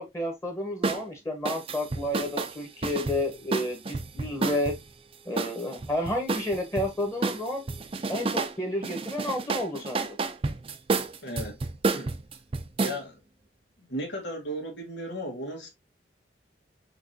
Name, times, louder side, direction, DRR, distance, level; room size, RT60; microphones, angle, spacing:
voice 1, 0.0-4.7 5.3-7.6 8.1-10.1, left 1 dB, 15° left, 1.2 m, -31 dB
sound 1, 0.8-1.0 1.5-4.8 5.4-6.9 7.2-8.6 8.8-13.0, right 3 dB, 30° right, 0.5 m, -30 dB
voice 2, 11.2-11.6 11.9-12.1 12.8-13.2 13.8-15.7, equal, 90° left, 1.8 m, -35 dB
5.8 x 3.0 x 2.7 m
head